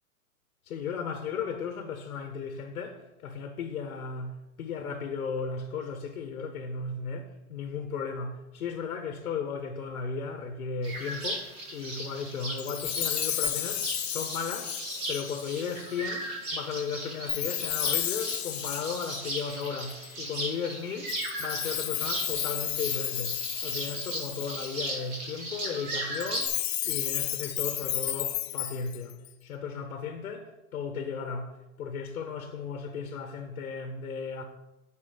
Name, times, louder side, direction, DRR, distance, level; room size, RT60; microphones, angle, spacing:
voice 1, 0.7-14.8 15.1-34.4, left 5 dB, 70° left, 1.2 m, -35 dB
sound 1, 10.8-26.5, right 1 dB, 15° right, 0.7 m, -37 dB
Chime, 12.6-15.9 17.3-20.1 21.1-24.9 26.1-29.3, left 12 dB, 45° left, 0.5 m, -33 dB
10.0 x 5.2 x 5.0 m
hypercardioid pair, 170°, 45 cm